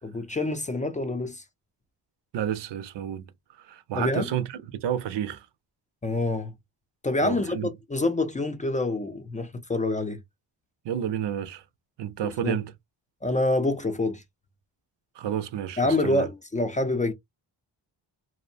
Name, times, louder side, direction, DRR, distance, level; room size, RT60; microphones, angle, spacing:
voice 1, 0.0-1.4 4.0-4.3 6.0-6.5 7.0-10.2 12.2-12.6 13.2-14.2 15.8-17.1, left 2 dB, 20° left, 0.4 m, -26 dB
voice 2, 2.3-3.2 3.6-5.5 7.2-7.7 10.8-11.6 12.0-12.7 15.2-16.3, right 9 dB, 75° right, 0.6 m, -30 dB
2.6 x 2.0 x 2.6 m
cardioid pair, 100°, 42 cm